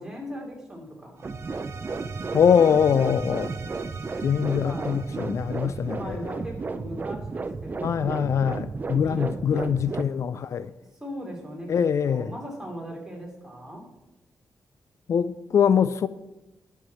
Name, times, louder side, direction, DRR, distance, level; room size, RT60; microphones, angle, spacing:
voice 1, 0.0-1.3 4.5-5.0 5.9-8.3 9.0-10.4 11.0-13.9, equal, 10° right, -1 dB, 2.9 m, -39 dB
sound 1, 1.2-10.0, right 4 dB, 30° right, 0.5 m, -33 dB
sound 2, 1.2-6.5, right 4 dB, 50° right, 1.4 m, -44 dB
voice 2, 2.3-3.5 4.2-6.3 7.8-10.7 11.7-12.3 15.1-16.1, left 7 dB, 60° left, 14 dB, 0.4 m, -23 dB
11.0 x 6.6 x 7.0 m, 0.97 s
wide cardioid pair, 145°, 6 cm